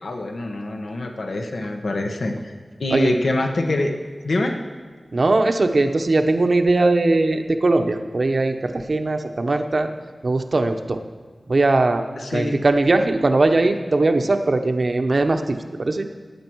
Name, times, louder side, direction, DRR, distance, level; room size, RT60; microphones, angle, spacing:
voice 1, 0.0-2.5 2.8-3.9 4.2-4.6 12.2-12.6, left 2 dB, 90° left, 3 dB, 1.1 m, -25 dB
voice 2, 5.1-9.9 10.2-11.0 11.5-12.0 12.3-16.1, right 2 dB, 60° right, 6 dB, 0.9 m, -20 dB
17.0 x 8.9 x 4.6 m, 1.5 s
wide cardioid pair, 65°, 0 cm